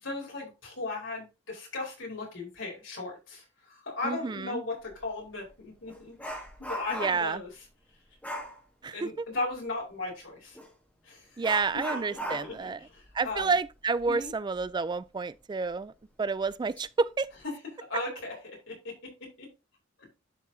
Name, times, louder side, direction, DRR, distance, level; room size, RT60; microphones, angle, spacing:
voice 1, 0.0-7.5 8.9-10.6 11.0-11.4 11.9-13.5 14.1-14.3 17.9-19.5 20.0-20.1, left 3 dB, 70° left, 4.2 m, -37 dB
voice 2, 4.0-4.6 6.9-7.4 8.8-9.3 11.4-12.8 13.1-15.9 16.2-17.3, right 4 dB, 20° right, 0.3 m, -30 dB
Dog, 4.9-5.0 5.4-7.4 8.2-8.6 10.5-10.7 11.4-14.7 15.0-15.1 15.7-15.8 16.4-16.8 17.2-17.4, equal, 10° left, 1.8 m, -39 dB
12.0 x 4.8 x 2.7 m
head